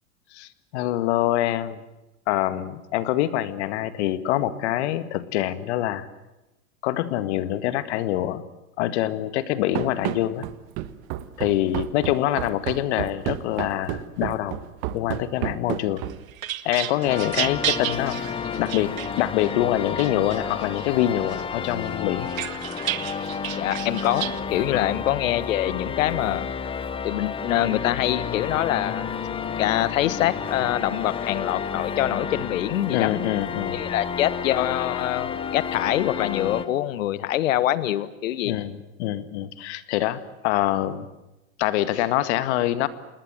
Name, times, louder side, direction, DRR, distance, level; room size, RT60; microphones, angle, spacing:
voice 1, 0.3-1.8 2.3-6.1 6.8-8.4 8.8-10.5 11.4-14.6 14.9-16.0 16.7-18.2 18.6-22.3 24.7-24.9 32.9-33.8 38.4-41.1 41.6-42.9, left 13 dB, 55° left, 13 dB, 2.0 m, -25 dB
Run, 9.8-16.4, right 14 dB, 45° right, 1.5 m, -31 dB
sound 1, 16.0-19.5 20.0-20.9 21.3-24.4, right 12 dB, 80° right, 1.7 m, -32 dB
sound 2, 17.0-36.7, left 6 dB, 15° left, 1.2 m, -31 dB
voice 2, 23.5-26.5 27.0-29.1 29.6-33.1 33.7-38.6, left 13 dB, 70° left, 16 dB, 1.6 m, -25 dB
28.0 x 20.5 x 7.8 m, 0.98 s
supercardioid pair, 140°, 40 cm